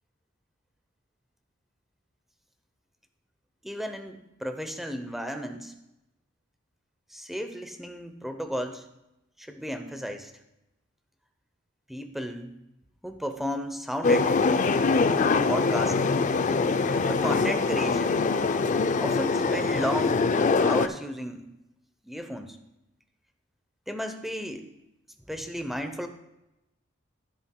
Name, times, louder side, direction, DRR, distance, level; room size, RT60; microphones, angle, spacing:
voice 1, 3.6-5.7 7.1-8.8 9.4-10.3 11.9-12.5 13.0-14.6 15.5-16.2 17.1-18.2 19.0-20.3 20.6-21.5 22.0-22.6 23.9-24.7 25.3-26.1, equal, ahead, 7 dB, 0.6 m, -33 dB
sound 1, 14.0-20.9, left 4 dB, 40° left, 0.4 m, -23 dB
14.0 x 7.2 x 2.2 m, 0.92 s
head